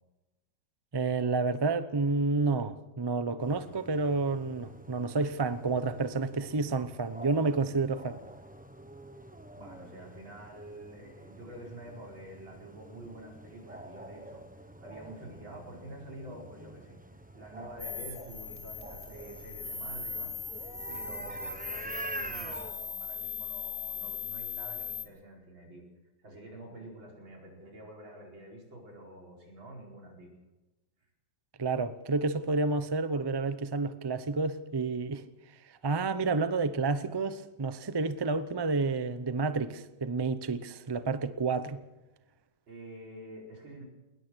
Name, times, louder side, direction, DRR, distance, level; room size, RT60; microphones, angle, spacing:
voice 1, 0.9-8.2 31.6-35.2 35.7-41.8, right 3 dB, 35° right, 0.3 m, -30 dB
sound 1, 3.4-22.7, right 1 dB, 5° right, 0.8 m, -47 dB
voice 2, 9.6-20.4 20.9-25.8 26.2-30.3 42.7-43.8, right 1 dB, 85° right, 5.5 m, -48 dB
sound 2, 17.8-25.0, left 5 dB, 20° left, 2.0 m, -39 dB
21.0 x 20.0 x 6.3 m
omnidirectional pair, 2.1 m